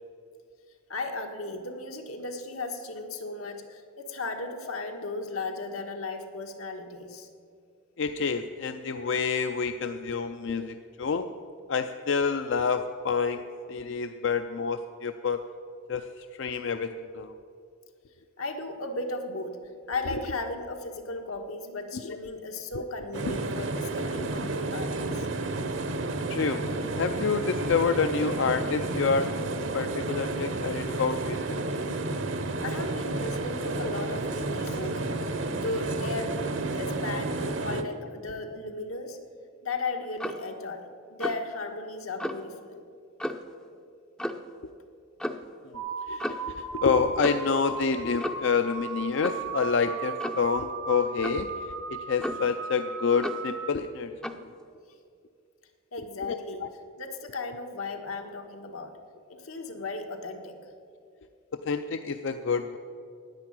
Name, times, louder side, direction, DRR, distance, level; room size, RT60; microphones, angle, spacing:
voice 1, 0.9-7.3 18.4-19.6 19.9-25.3 32.6-39.2 39.6-42.8 55.9-56.6 57.0-59.0 59.3-60.7, left 2 dB, 85° left, 4 dB, 1.4 m, -36 dB
voice 2, 8.0-11.3 11.7-15.4 15.9-16.1 16.4-17.3 22.0-22.2 24.2-24.3 26.3-26.6 27.0-29.3 29.7-31.6 45.7-45.8 46.1-54.1 56.2-56.7 61.5-62.8, left 5 dB, 60° left, 8 dB, 0.4 m, -28 dB
sound 1, 23.1-37.8, right 2 dB, 60° right, 0.9 m, -31 dB
Clock, 40.2-40.5 41.2-41.5 42.2-42.4 43.2-43.5 44.2-44.5 45.2-45.5 46.2-46.5 47.2-47.5 48.2-48.5 49.2-49.5 50.2-50.5 51.2-51.5 52.2-52.6 53.2-53.5 54.2-54.5, equal, 5° left, 0.4 m, -34 dB
sound 2, 45.7-53.7, right 5 dB, 80° right, 1.5 m, -37 dB
10.5 x 9.5 x 8.8 m, 2.4 s
head